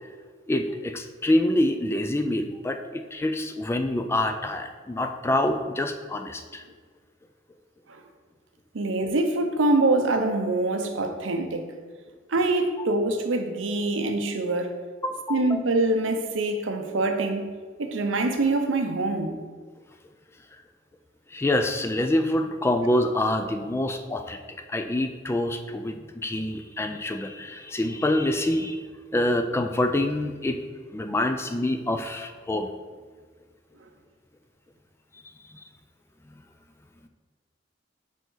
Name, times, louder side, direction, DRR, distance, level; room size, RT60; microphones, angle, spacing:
voice 1, 0.5-6.6 15.0-15.6 21.3-24.4 24.7-30.6 30.9-32.7 35.5-35.6, left 1 dB, 15° left, 0.3 m, -26 dB
voice 2, 8.7-11.7 12.3-14.7 15.3-17.5 17.8-19.4, right 2 dB, 85° right, 0.7 m, -24 dB
5.5 x 5.1 x 3.8 m
head